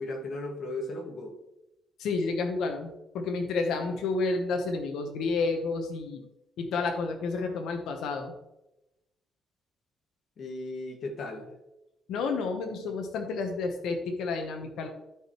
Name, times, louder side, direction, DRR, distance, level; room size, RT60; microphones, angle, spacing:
voice 1, 0.0-1.3 10.4-11.5, left 2 dB, 60° left, 2 dB, 1.9 m, -36 dB
voice 2, 2.0-6.2 6.6-8.3 12.1-14.9, left 4 dB, 80° left, 4 dB, 1.1 m, -30 dB
12.5 x 4.9 x 3.1 m, 0.91 s
cardioid pair, 90°, 0 cm